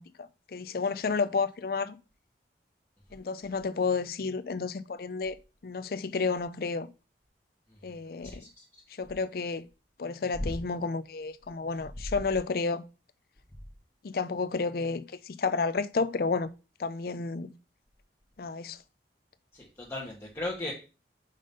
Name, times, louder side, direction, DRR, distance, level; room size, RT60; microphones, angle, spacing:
voice 1, 0.0-2.0 3.1-5.4 5.6-6.9 7.8-8.4 9.0-9.7 10.0-12.8 14.0-16.5 16.8-17.5 18.4-18.8, left 4 dB, 55° left, 0.4 m, -31 dB
voice 2, 8.2-8.6 10.4-10.6 19.5-20.7, left 1 dB, 15° left, 1.2 m, -36 dB
5.2 x 3.8 x 5.2 m
head